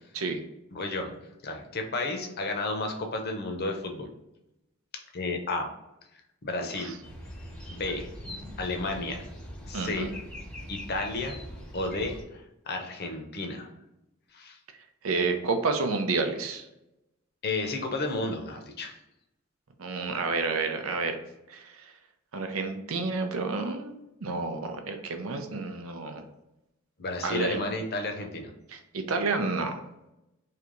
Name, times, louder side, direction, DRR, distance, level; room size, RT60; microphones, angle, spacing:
voice 1, 0.7-1.1 1.4-4.1 5.1-5.7 6.4-6.9 7.7-8.1 8.6-9.2 9.7-10.1 10.7-11.4 11.7-13.7 14.3-14.6 17.4-19.0 27.0-28.5, left 2 dB, 50° left, 4 dB, 0.7 m, -32 dB
voice 2, 6.6-6.9 9.7-10.1 15.0-16.7 19.8-21.2 21.5-21.9 22.3-26.3 27.2-27.6 28.7-29.8, right 3 dB, 90° right, 6 dB, 0.6 m, -30 dB
sound 1, 7.0-12.2, left 1 dB, 5° left, 0.7 m, -42 dB
3.3 x 2.9 x 3.8 m, 0.90 s
head